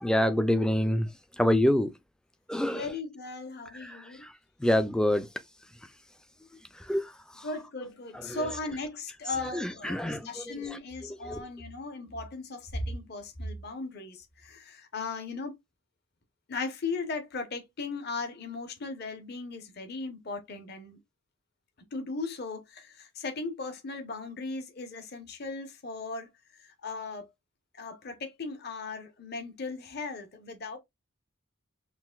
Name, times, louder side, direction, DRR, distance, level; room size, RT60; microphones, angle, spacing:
voice 1, 0.0-1.1 1.4-1.9 2.5-2.9 3.8-4.0 4.6-5.3 6.9-7.1 7.4-7.5 8.1-8.5 9.4-10.5 11.3-11.4, left 1 dB, 5° left, 0.3 m, -26 dB
voice 2, 2.7-4.3 7.4-15.5 16.5-21.0 21.9-26.3 26.6-27.3 27.8-30.8, left 3 dB, 50° left, 0.8 m, -37 dB
5.9 x 2.5 x 2.3 m
head